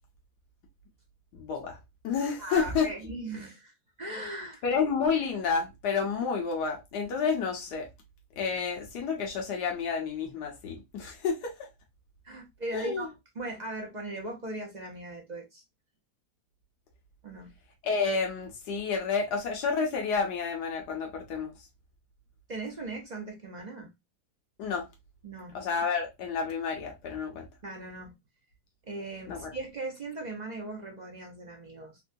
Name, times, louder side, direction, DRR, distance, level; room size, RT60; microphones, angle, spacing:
voice 1, 1.3-1.8 2.0-2.9 4.6-7.9 8.4-11.7 12.7-13.1 17.8-21.5 24.6-24.8 25.5-27.5 29.3-29.5, left 5 dB, 90° left, 1.4 m, -30 dB
voice 2, 2.4-4.6 12.2-13.1 13.3-15.6 17.2-17.5 22.5-23.9 25.2-25.6 27.6-28.1 28.8-32.0, right 2 dB, 45° right, 0.5 m, -38 dB
3.9 x 2.2 x 2.6 m
omnidirectional pair, 1.7 m